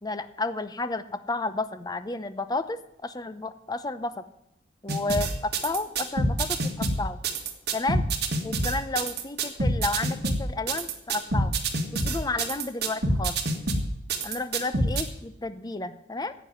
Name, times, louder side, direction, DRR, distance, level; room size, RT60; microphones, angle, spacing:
voice 1, 0.0-4.2 4.8-7.2 7.7-8.0 8.4-11.5 11.9-13.4 14.2-16.3, left 2 dB, 20° left, 12 dB, 0.7 m, -32 dB
sound 1, 4.9-15.0, right 2 dB, 60° right, 1.7 m, -26 dB
10.5 x 8.1 x 9.5 m, 0.84 s
head